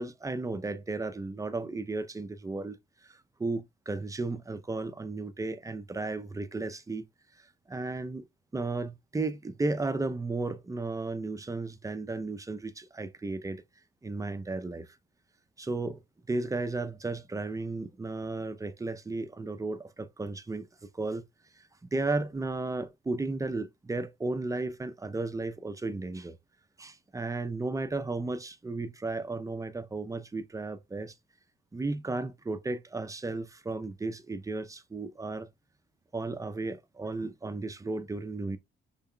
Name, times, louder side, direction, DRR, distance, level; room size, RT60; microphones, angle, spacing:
voice 1, 0.0-7.0 7.7-8.2 8.5-13.6 14.0-15.0 15.6-16.0 16.3-20.7 20.9-21.2 21.9-26.4 26.8-31.1 31.7-35.5 36.1-38.6, right 3 dB, 15° right, 0.6 m, -34 dB
5.6 x 4.1 x 2.2 m
cardioid pair, 90°, 19 cm